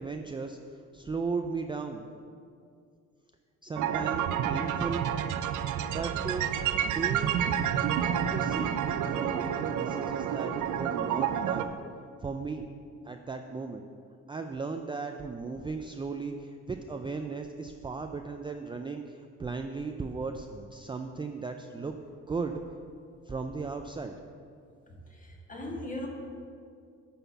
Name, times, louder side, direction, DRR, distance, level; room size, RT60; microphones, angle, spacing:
voice 1, 0.0-2.0 3.6-5.1 5.9-6.5 6.9-7.4 8.1-11.7 12.2-12.6 13.0-13.8 14.3-21.9 22.3-22.6 23.3-24.1, right 4 dB, 15° right, 5 dB, 0.4 m, -36 dB
sound 1, 3.8-11.6, right 9 dB, 75° right, 0.5 m, -29 dB
voice 2, 25.1-26.1, left 1 dB, 25° left, -1 dB, 1.7 m, -38 dB
9.0 x 4.3 x 7.0 m, 2.3 s
cardioid pair, 90°, 30 cm